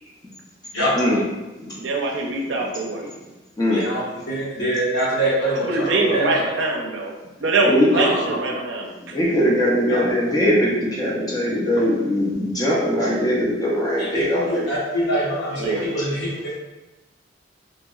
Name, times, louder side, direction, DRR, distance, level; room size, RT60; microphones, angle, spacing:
voice 1, 1.8-3.0 5.7-8.9 15.6-15.9, right 2 dB, 75° right, 1 dB, 0.5 m, -23 dB
voice 2, 3.7-6.4 7.9-8.4 9.9-10.0 14.0-16.5, right 1 dB, 65° left, -8 dB, 1.0 m, -24 dB
voice 3, 7.6-8.1 9.1-14.7, equal, 20° left, -6 dB, 0.5 m, -20 dB
2.9 x 2.8 x 2.3 m, 1.1 s
head